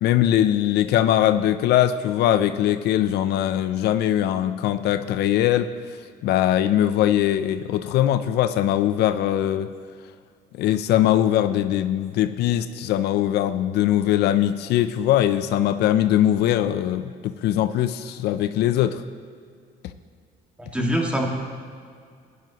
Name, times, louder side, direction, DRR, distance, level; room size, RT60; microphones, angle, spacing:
voice 1, 0.0-5.7 6.2-9.7 10.5-19.0, left 12 dB, 75° left, 11 dB, 0.5 m, -21 dB
voice 2, 20.6-21.3, equal, 5° right, 0 dB, 2.0 m, -24 dB
16.5 x 11.0 x 3.0 m, 2.2 s
cardioid pair, 110°, 17 cm